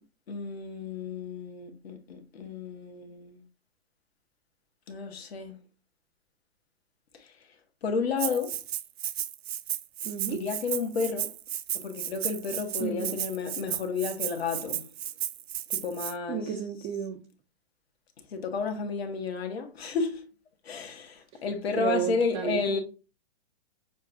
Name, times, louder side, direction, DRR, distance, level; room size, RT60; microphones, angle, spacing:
voice 1, 0.3-3.4 4.9-5.6 7.1-7.4 7.8-8.6 10.2-11.4 11.7-14.9 15.7-16.5 18.3-20.3 20.6-22.8, left 5 dB, 75° left, 1.4 m, -32 dB
Rattle (instrument), 8.2-16.1, right 11 dB, 80° right, 0.6 m, -34 dB
voice 2, 10.0-10.4 12.8-13.2 16.3-17.2 21.8-22.8, right 9 dB, 15° right, 0.3 m, -32 dB
7.0 x 2.3 x 2.6 m
hypercardioid pair, 135°, 31 cm